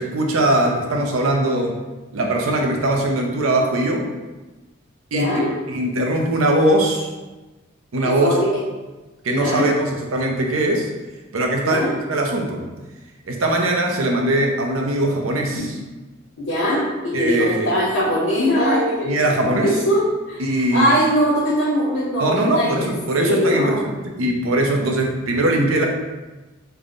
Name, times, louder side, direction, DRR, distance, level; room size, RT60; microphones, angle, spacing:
voice 1, 0.0-1.8 2.1-4.1 5.1-7.1 7.9-8.4 9.2-10.9 11.3-12.7 13.3-15.7 17.1-17.7 19.0-19.8 20.4-21.0 22.2-25.9, right 1 dB, 90° right, 1 dB, 0.6 m, -21 dB
voice 2, 5.1-5.5 8.2-8.4 9.3-9.7 11.6-11.9 16.4-19.2 19.6-20.4 20.7-22.9 23.2-23.9, equal, 65° left, -8 dB, 0.9 m, -21 dB
3.4 x 2.2 x 3.7 m, 1.1 s
head